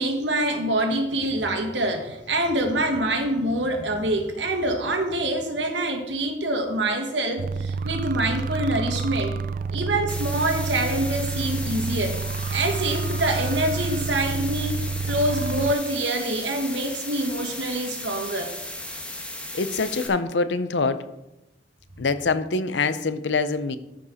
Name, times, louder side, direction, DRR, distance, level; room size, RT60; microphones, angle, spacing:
voice 1, 0.0-9.4 9.7-12.2 12.5-18.5, right 1 dB, 90° right, 4 dB, 1.6 m, -25 dB
sound 1, 7.4-15.7, right 4 dB, 50° right, 0.3 m, -29 dB
sound 2, 10.1-20.1, left 1 dB, 5° left, 1.1 m, -36 dB
voice 2, 19.5-21.1 22.0-23.8, left 4 dB, 80° left, 12 dB, 0.7 m, -24 dB
14.0 x 5.3 x 4.2 m, 0.93 s
head